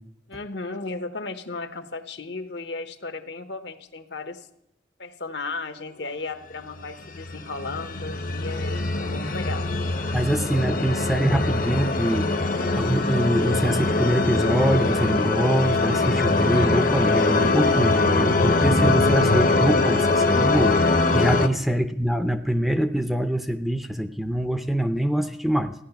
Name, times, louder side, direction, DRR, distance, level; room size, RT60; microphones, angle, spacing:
voice 1, 0.3-4.5 5.0-9.7 21.5-21.8, left 3 dB, 65° left, 9 dB, 0.9 m, -35 dB
sound 1, 7.1-21.5, left 3 dB, 45° left, 0.8 m, -22 dB
voice 2, 10.1-12.3 12.7-25.7, right 1 dB, ahead, 8 dB, 0.5 m, -24 dB
15.0 x 9.8 x 5.8 m, 0.78 s
head